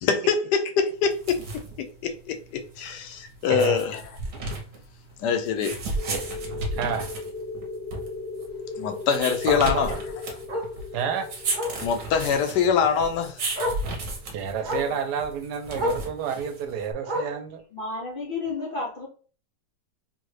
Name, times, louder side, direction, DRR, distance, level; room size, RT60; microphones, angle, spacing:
voice 1, 0.0-4.0 5.2-5.8 8.8-9.9 11.8-13.4, left 6 dB, 85° left, 1.2 m, -24 dB
sound 1, 1.0-16.9, right 2 dB, 60° right, 1.1 m, -35 dB
Bark, 4.0-4.2 4.6-4.7 5.1-5.2 5.5-5.6 7.0-7.1 9.6-9.7 10.5-10.7 11.5-11.8 13.0-13.1 13.5-13.9 14.6-15.0 15.7-16.1 17.0-17.5 18.4-18.5, left 1 dB, 35° right, 0.8 m, -30 dB
sound 2, 6.0-14.3, left 3 dB, 5° left, 0.6 m, -38 dB
voice 2, 6.8-7.1 9.5-10.0 10.9-11.3 14.3-17.6, right 7 dB, 80° right, 1.1 m, -29 dB
voice 3, 17.7-19.1, left 3 dB, 55° left, 0.6 m, -32 dB
3.7 x 2.1 x 3.2 m
omnidirectional pair, 1.8 m